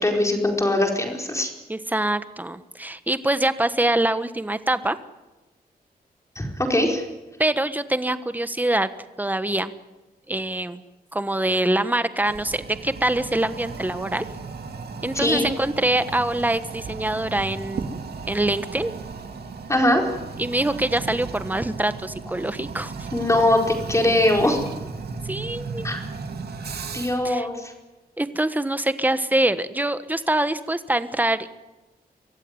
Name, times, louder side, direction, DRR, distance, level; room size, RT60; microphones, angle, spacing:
voice 1, 0.0-1.5 6.3-7.1 15.1-15.5 19.7-20.1 23.1-24.6 25.8-26.0 26.9-27.7, left 1 dB, 20° left, 2 dB, 4.6 m, -21 dB
voice 2, 1.7-5.0 7.4-8.9 9.2-9.7 10.3-10.8 11.1-14.3 15.0-17.9 18.3-18.9 20.4-23.1 25.2-25.9 27.2-27.5 28.2-31.5, right 1 dB, 10° right, 12 dB, 1.2 m, -24 dB
Toilet flush, 12.2-27.3, right 4 dB, 85° right, 2.5 m, -35 dB
24.5 x 15.5 x 9.7 m, 1.1 s
wide cardioid pair, 95°, 16 cm